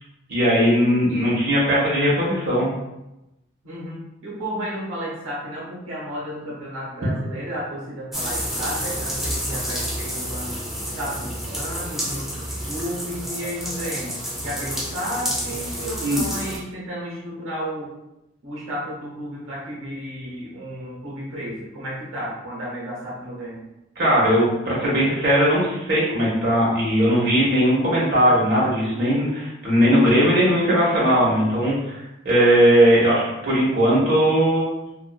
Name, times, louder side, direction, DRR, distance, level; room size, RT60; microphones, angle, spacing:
voice 1, 0.3-2.7 16.0-16.2 24.0-34.6, equal, 55° right, -7 dB, 1.0 m, -19 dB
voice 2, 3.6-10.6 10.9-17.9 18.4-23.6, equal, 85° right, -6 dB, 0.8 m, -33 dB
sound 1, 8.1-16.6, equal, ahead, 0.4 m, -29 dB
2.6 x 2.4 x 2.2 m, 0.93 s
head